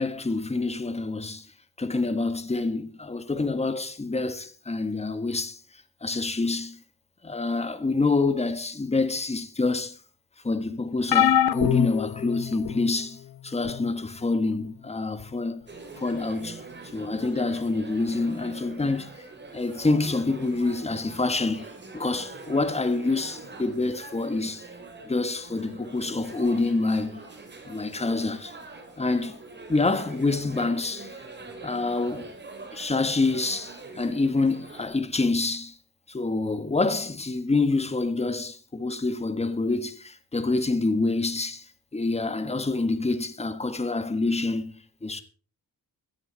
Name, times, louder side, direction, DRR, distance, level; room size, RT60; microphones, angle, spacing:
voice 1, 0.0-1.5 1.8-5.6 6.0-6.8 7.2-10.0 10.4-15.6 16.0-16.6 16.9-19.1 19.5-24.7 25.0-27.2 27.6-28.6 29.0-29.4 29.7-31.1 31.6-32.3 32.7-35.8 36.1-41.7 41.9-45.2, left 3 dB, 15° left, 1.5 m, -27 dB
sound 1, 11.1-12.9 13.6-13.9 15.2-15.3, left 10 dB, 75° left, 0.8 m, -24 dB
sound 2, 15.7-34.9, right 3 dB, 30° right, 3.4 m, -44 dB
17.0 x 12.5 x 4.0 m
wide cardioid pair, 150°, 37 cm